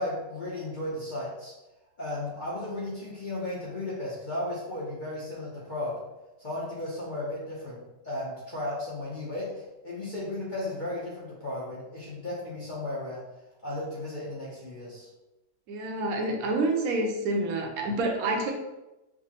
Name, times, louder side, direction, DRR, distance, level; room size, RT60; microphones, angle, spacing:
voice 1, 0.0-1.5 2.0-6.0 6.4-13.2 13.6-15.1, left 1 dB, 45° left, -7 dB, 0.7 m, -35 dB
voice 2, 15.7-18.5, right 2 dB, 70° right, 2 dB, 1.0 m, -28 dB
4.8 x 2.1 x 2.8 m, 1.0 s
omnidirectional pair, 1.7 m